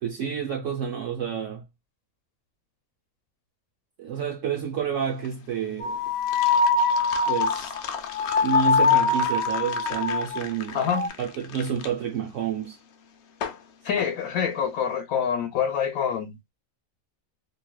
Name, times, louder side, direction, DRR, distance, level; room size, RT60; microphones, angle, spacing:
voice 1, 0.0-1.6 4.0-6.0 7.3-7.7 8.4-10.8 11.2-12.8, right 8 dB, 65° right, 1.0 m, -29 dB
sound 1, 5.0-14.9, left 7 dB, 65° left, 0.8 m, -37 dB
sound 2, 5.8-10.4 10.8-11.1, left 4 dB, 30° left, 0.7 m, -23 dB
voice 2, 10.7-11.1 13.8-16.5, left 7 dB, 85° left, 1.1 m, -26 dB
3.2 x 2.7 x 2.2 m
omnidirectional pair, 1.5 m